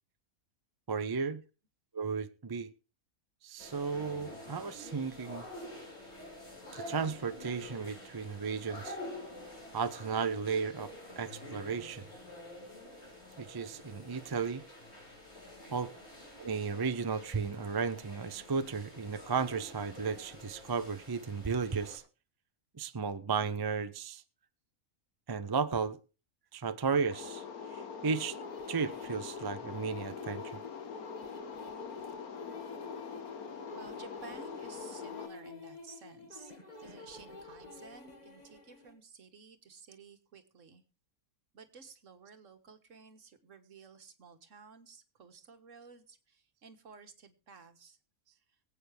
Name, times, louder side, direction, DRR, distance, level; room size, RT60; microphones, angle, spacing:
voice 1, 0.9-1.4 1.9-2.7 3.4-5.4 6.7-9.0 9.7-12.1 13.4-14.6 15.7-15.9 16.4-22.0 22.7-24.2 25.3-26.0 26.5-27.4 27.7-28.4 28.7-30.6, right 5 dB, 30° right, 0.4 m, -34 dB
sound 1, 3.6-22.0, left 1 dB, 50° left, 5.6 m, -48 dB
voice 2, 15.7-16.1 33.7-40.8 41.5-48.0, right 5 dB, 60° right, 1.7 m, -54 dB
sound 2, 27.1-35.3, left 6 dB, 85° left, 1.7 m, -43 dB
sound 3, 28.4-38.9, left 3 dB, 30° left, 1.9 m, -50 dB
23.5 x 8.5 x 3.4 m
omnidirectional pair, 1.5 m